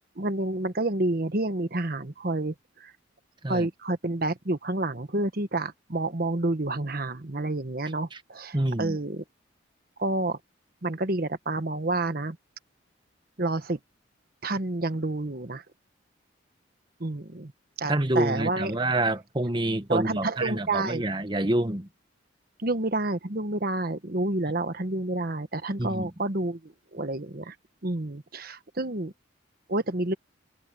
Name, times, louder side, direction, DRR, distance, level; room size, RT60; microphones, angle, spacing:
voice 1, 0.2-2.5 2.8-2.9 3.5-9.2 10.0-10.4 10.8-12.4 13.4-13.8 14.4-15.6 17.0-17.5 17.8-18.7 19.9-21.0 22.6-27.5 27.8-29.1 29.7-30.1, right 2 dB, 50° right, 1.2 m, -29 dB
voice 2, 8.5-9.0 17.9-21.9 25.8-26.1, right 1 dB, 25° right, 1.2 m, -27 dB
head